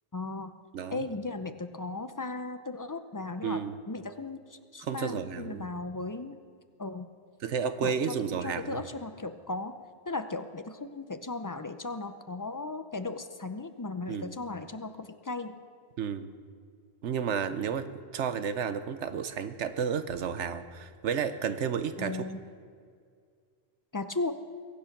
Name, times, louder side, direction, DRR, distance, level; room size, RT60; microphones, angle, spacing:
voice 1, 0.1-0.5 0.9-3.6 3.9-6.4 6.8-7.1 7.8-9.8 10.1-15.6 22.0-22.4 23.9-24.3, left 3 dB, 30° left, 9 dB, 0.3 m, -36 dB
voice 2, 3.4-3.7 4.8-5.7 7.4-8.8 14.1-14.3 16.0-16.3 17.0-22.2, right 7 dB, 75° right, 11 dB, 1.1 m, -32 dB
22.0 x 8.5 x 5.9 m, 2.1 s
omnidirectional pair, 1.2 m